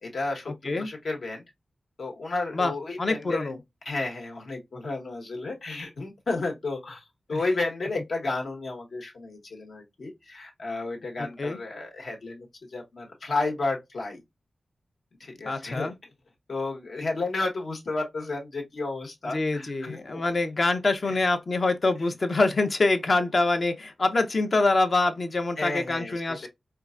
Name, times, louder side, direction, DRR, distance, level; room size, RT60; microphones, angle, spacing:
voice 1, 0.0-1.4 2.0-3.5 3.8-14.2 15.2-15.9 16.5-20.2 21.1-21.2 25.6-26.5, left 3 dB, 70° left, 1.2 m, -32 dB
voice 2, 3.0-3.6 7.3-7.4 11.2-11.6 15.5-15.9 19.3-26.5, left 3 dB, 50° left, 0.6 m, -25 dB
4.5 x 2.3 x 2.4 m
wide cardioid pair, 100°, 0 cm